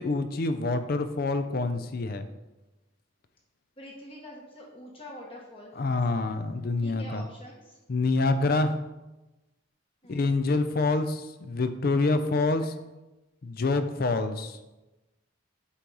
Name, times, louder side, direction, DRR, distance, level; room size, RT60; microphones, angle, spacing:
voice 1, 0.0-2.3 5.8-7.2 7.9-8.8 10.1-12.6 13.4-14.6, left 3 dB, 50° left, 10 dB, 0.5 m, -26 dB
voice 2, 3.8-6.4 6.8-7.8 10.0-10.4 12.6-12.7, equal, 25° left, -2 dB, 1.0 m, -46 dB
8.3 x 3.0 x 5.3 m, 1.1 s
head